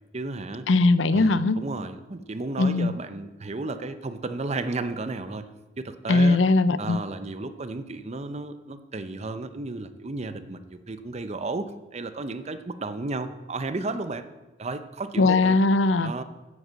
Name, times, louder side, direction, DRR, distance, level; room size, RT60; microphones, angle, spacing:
voice 1, 0.1-0.7 1.1-5.5 5.8-6.4 6.8-14.2 14.6-15.6 16.0-16.2, right 3 dB, 35° right, 11 dB, 0.7 m, -33 dB
voice 2, 0.7-1.6 2.6-3.0 6.1-7.0 15.2-16.1, left 3 dB, 90° left, 14 dB, 0.6 m, -20 dB
9.5 x 8.0 x 7.5 m, 1.1 s
head